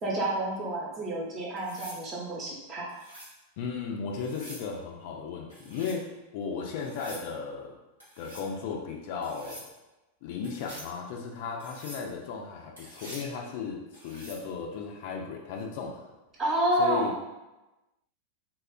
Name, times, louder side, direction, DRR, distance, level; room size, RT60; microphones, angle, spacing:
voice 1, 0.0-2.9 16.4-17.2, right 1 dB, 30° right, -4 dB, 0.8 m, -29 dB
sound 1, 1.6-2.0 2.9-3.3 4.2-4.7 5.5-6.0 6.8-7.3 8.0-8.5 9.2-9.7 10.4-10.9 11.6-12.0 12.8-13.3 13.9-14.4 16.4-16.6, equal, 85° right, 1.2 m, -46 dB
voice 2, 3.6-7.7 8.2-9.6 10.2-16.1 16.8-17.1, left 5 dB, 50° left, 0 dB, 0.4 m, -35 dB
3.4 x 2.3 x 2.3 m, 1.0 s
figure-of-eight pair, 90°, 0 cm